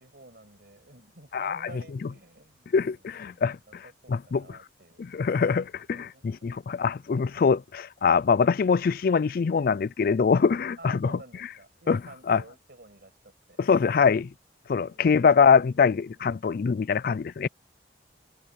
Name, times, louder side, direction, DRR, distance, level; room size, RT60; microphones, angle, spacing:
voice 1, 0.0-5.0 5.6-6.5 10.8-13.6 15.8-16.2, right 2 dB, 60° right, 6.5 m, -51 dB
voice 2, 2.7-3.6 4.1-4.6 5.0-11.1 11.9-12.0 12.3-12.4 13.6-14.3 14.7-17.5, left 5 dB, 55° left, 0.4 m, -23 dB
head